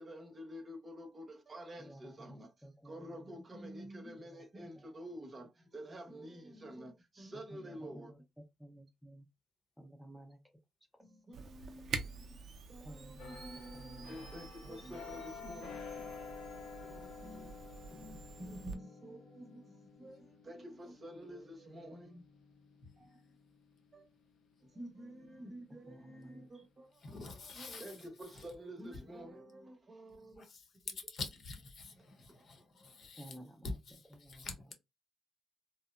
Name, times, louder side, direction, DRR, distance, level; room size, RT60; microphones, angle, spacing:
voice 1, 0.0-2.5 2.8-8.1 11.0-16.1 16.8-22.2 23.0-23.2 23.9-24.0 24.6-27.3 27.6-30.4, equal, 35° right, 0.8 m, -49 dB
voice 2, 1.8-3.3 4.2-4.4 4.8-4.9 7.5-9.2 9.8-10.4 12.8-14.3 14.6-15.0 25.7-26.5 33.2-33.8 34.1-34.5, right 1 dB, ahead, 0.6 m, -54 dB
Camera, 11.3-18.8, right 5 dB, 60° right, 0.5 m, -47 dB
sound 1, 13.2-24.7 25.2-25.4, left 5 dB, 90° left, 0.8 m, -51 dB
voice 3, 22.8-23.2 27.0-28.5 30.3-33.4 33.6-34.7, left 4 dB, 55° left, 0.9 m, -47 dB
2.8 x 2.0 x 2.4 m
cardioid pair, 90°, 0 cm